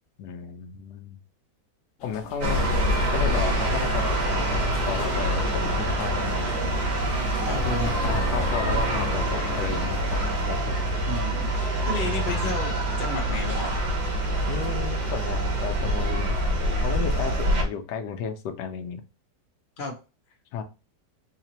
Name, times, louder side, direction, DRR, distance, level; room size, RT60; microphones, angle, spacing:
voice 1, 0.2-1.2 2.0-2.6 3.1-6.5 8.0-10.9 11.9-12.6 14.5-16.4 16.8-19.0 20.5-20.6, left 6 dB, 80° left, 6 dB, 1.2 m, -34 dB
sound 1, 2.0-10.6, left 2 dB, 60° left, 1.0 m, -40 dB
sound 2, 2.4-17.6, right 1 dB, 70° right, 1.8 m, -25 dB
voice 2, 7.5-7.9 11.1-12.7 13.0-13.7 19.8-19.9, left 2 dB, 35° left, 0 dB, 1.1 m, -32 dB
4.1 x 2.8 x 2.9 m, 0.30 s
omnidirectional pair, 1.9 m